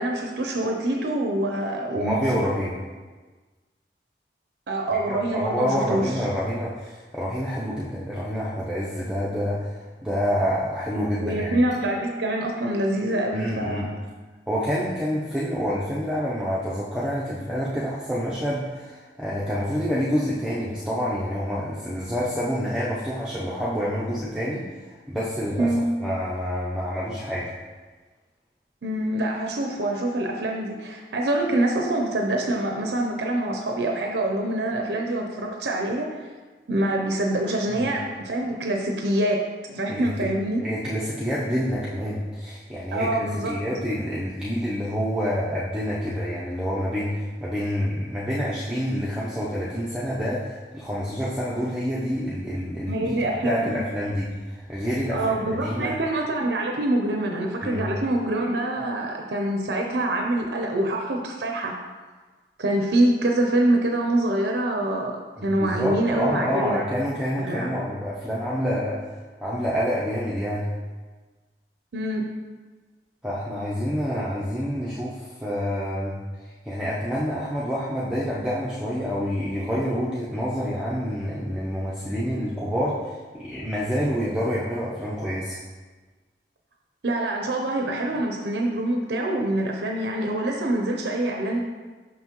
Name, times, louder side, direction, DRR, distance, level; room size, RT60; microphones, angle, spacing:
voice 1, 0.0-2.2 4.7-6.1 11.2-13.9 25.6-25.9 28.8-36.2 36.7-40.6 42.9-43.7 52.9-53.9 55.1-61.7 62.6-65.1 65.4-66.8 67.4-67.7 71.9-72.3 87.0-91.6, right 1 dB, 75° right, 1 dB, 0.6 m, -25 dB
voice 2, 1.9-2.8 4.9-11.6 13.3-13.9 14.5-25.7 26.0-27.5 37.7-37.9 39.9-40.3 40.6-53.2 53.4-56.0 57.6-57.9 65.4-69.0 69.4-70.7 73.2-85.6, equal, 5° right, -8 dB, 0.6 m, -28 dB
6.0 x 5.7 x 3.0 m, 1.4 s
head